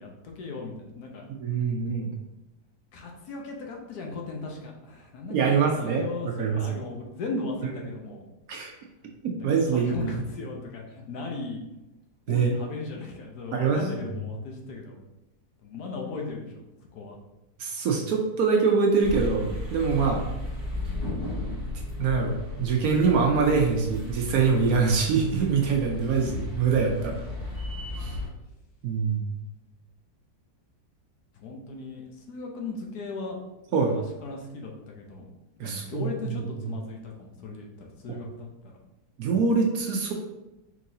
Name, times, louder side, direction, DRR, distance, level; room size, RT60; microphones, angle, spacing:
voice 1, 0.0-1.3 2.9-8.2 9.3-11.6 12.3-15.0 15.6-16.5 16.9-17.2 20.0-20.3 31.4-33.4 33.7-35.3 35.6-38.8, left 3 dB, 70° left, 1 dB, 1.2 m, -37 dB
voice 2, 1.3-2.2 5.3-6.8 8.5-8.7 9.2-10.2 12.3-12.5 13.5-13.8 17.6-20.2 22.0-27.2 28.0-28.2 28.8-29.3 33.7-34.0 35.6-36.4 38.1-38.2 39.2-40.1, right 5 dB, 70° right, 2 dB, 0.9 m, -24 dB
sound 1, 19.0-28.3, left 2 dB, 10° left, 1.5 m, -34 dB
4.7 x 3.9 x 2.7 m, 0.96 s
omnidirectional pair, 1.8 m